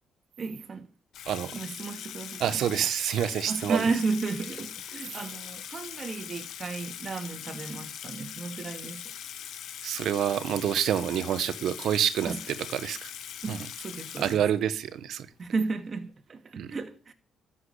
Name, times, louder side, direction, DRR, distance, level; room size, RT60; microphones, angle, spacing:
voice 1, 0.4-0.9 1.5-2.6 3.5-9.0 12.3-12.4 13.4-14.4 15.4-17.1, right 4 dB, 40° right, 2.3 m, -33 dB
Water tap faucet / Sink (filling or washing), 1.1-14.9, left 10 dB, 80° left, 1.6 m, -41 dB
voice 2, 2.4-3.8 9.8-13.1 13.5-13.7 14.2-15.3 16.6-16.7, right 10 dB, 75° right, 1.2 m, -28 dB
12.5 x 7.5 x 9.9 m
cardioid pair, 90°, 0 cm